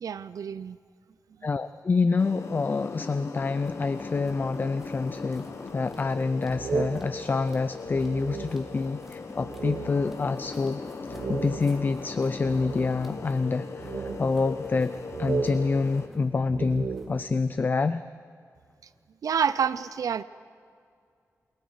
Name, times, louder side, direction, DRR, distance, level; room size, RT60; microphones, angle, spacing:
voice 1, 0.0-0.8 19.2-20.2, right 7 dB, 85° right, 14 dB, 0.5 m, -28 dB
voice 2, 1.4-5.5 5.7-10.8 11.3-14.9 15.2-18.0, left 4 dB, 35° left, 13 dB, 0.4 m, -27 dB
sound 1, 2.2-16.1, left 4 dB, 55° left, 1.2 m, -39 dB
sound 2, 3.6-17.3, equal, 5° right, 2.4 m, -52 dB
sound 3, 6.5-8.9 9.4-10.2 10.6-10.7 11.1-13.3 13.8-14.9 15.1-17.5, right 5 dB, 60° right, 1.0 m, -35 dB
28.5 x 22.0 x 4.8 m, 2.2 s
wide cardioid pair, 170°, 6 cm